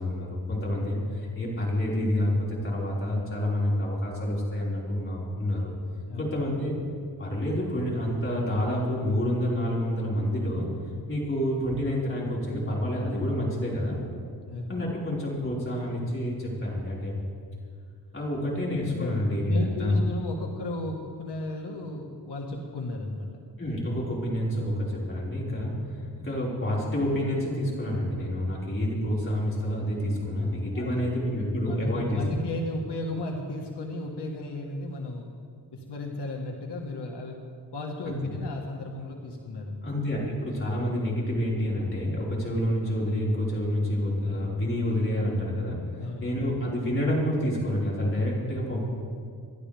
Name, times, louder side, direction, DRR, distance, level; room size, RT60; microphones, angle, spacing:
voice 1, 0.0-5.7 6.2-6.8 7.2-10.7 11.1-14.0 14.7-17.1 18.1-20.0 23.6-32.4 38.0-38.2 39.8-45.8 46.2-48.9, left 1 dB, 30° left, -6 dB, 4.9 m, -28 dB
voice 2, 14.4-14.9 18.9-19.1 19.5-23.3 30.7-30.9 31.6-35.3 35.7-37.4 37.7-39.9 46.0-46.3, left 2 dB, 85° left, 0 dB, 1.6 m, -34 dB
28.0 x 11.5 x 3.5 m, 2.2 s
wide cardioid pair, 115°, 40 cm